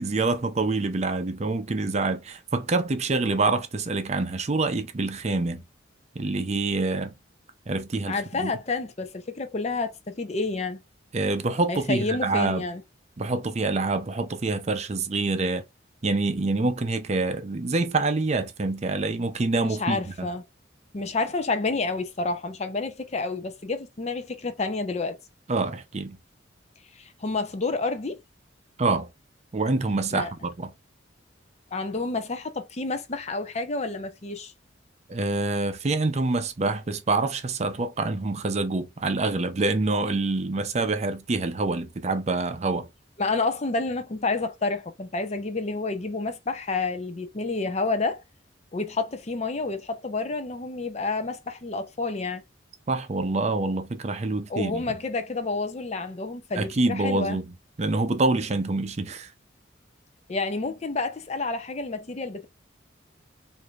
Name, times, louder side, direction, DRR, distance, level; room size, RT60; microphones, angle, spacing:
voice 1, 0.0-5.6 6.2-7.1 7.7-8.5 11.1-12.6 13.2-15.6 16.0-20.3 25.5-26.2 28.8-29.1 29.5-30.7 35.1-42.9 52.9-54.8 56.6-57.4 57.8-59.3, right 3 dB, 35° right, 0.5 m, -26 dB
voice 2, 8.1-10.8 11.7-12.8 19.6-20.4 20.9-25.2 27.0-28.2 30.1-30.3 31.7-34.5 43.2-48.2 48.7-52.4 54.5-57.4 60.3-62.5, left 3 dB, 35° left, 0.5 m, -29 dB
4.8 x 2.6 x 2.3 m
head